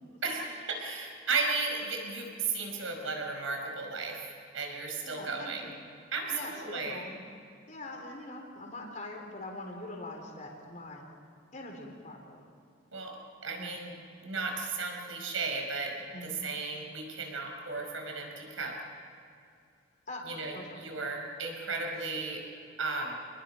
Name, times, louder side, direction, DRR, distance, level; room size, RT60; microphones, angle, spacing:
voice 1, 0.2-5.7 6.1-7.0 12.9-13.1 13.4-13.9 14.2-15.9 16.2-18.7 20.3-22.4 22.8-23.1, right 4 dB, 85° right, 2 dB, 5.4 m, -35 dB
voice 2, 5.0-5.7 6.3-7.2 7.7-11.0 11.5-12.4 13.6-13.8 16.1-16.3 20.1-20.2 20.5-20.8, left 2 dB, 40° left, 1 dB, 3.8 m, -43 dB
28.0 x 21.0 x 5.7 m, 2.5 s
head